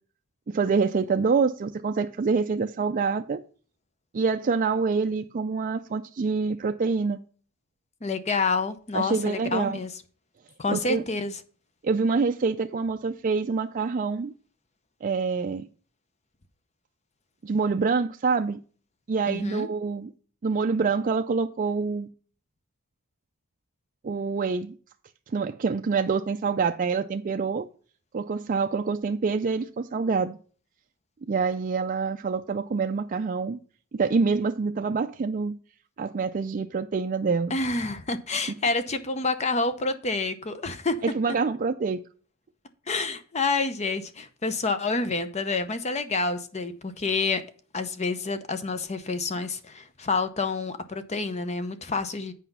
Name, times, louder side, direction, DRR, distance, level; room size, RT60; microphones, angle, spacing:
voice 1, 0.5-3.4 4.1-7.2 8.9-9.8 10.7-11.0 11.8-14.3 15.0-15.7 17.4-18.6 19.1-20.1 20.4-22.1 24.0-24.7 25.3-27.7 28.1-30.4 31.3-33.6 33.9-35.6 36.0-37.5 41.0-42.0, right 4 dB, 40° right, 0.4 m, -26 dB
voice 2, 8.0-9.9 10.6-11.4 19.3-19.7 37.5-41.0 42.9-47.4 47.7-52.3, left 3 dB, 30° left, 0.7 m, -28 dB
8.0 x 5.0 x 5.4 m
head